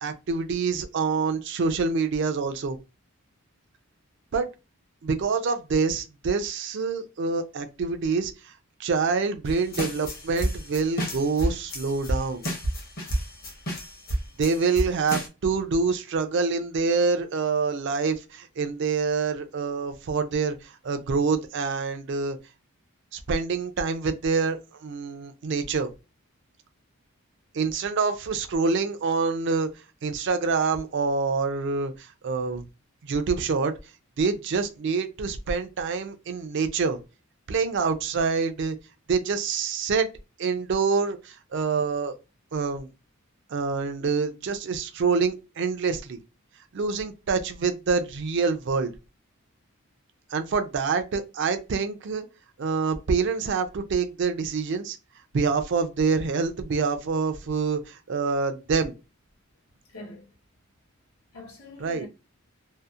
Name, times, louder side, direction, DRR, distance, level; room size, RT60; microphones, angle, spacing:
voice 1, 0.0-2.8 4.3-4.5 5.0-8.5 8.8-12.5 14.4-22.4 23.1-25.9 27.5-29.7 30.0-32.6 33.0-33.7 34.2-37.0 37.5-38.8 39.1-40.1 40.4-42.1 42.5-42.9 43.5-46.2 46.7-48.9 50.3-52.3 52.6-55.0 55.3-58.9 61.8-62.1, right 4 dB, 55° right, 0.4 m, -26 dB
sound 1, 9.4-15.3, right 1 dB, 45° left, 0.8 m, -30 dB
voice 2, 59.9-60.3 61.3-62.1, left 2 dB, 85° left, 1.0 m, -43 dB
2.7 x 2.0 x 2.3 m
head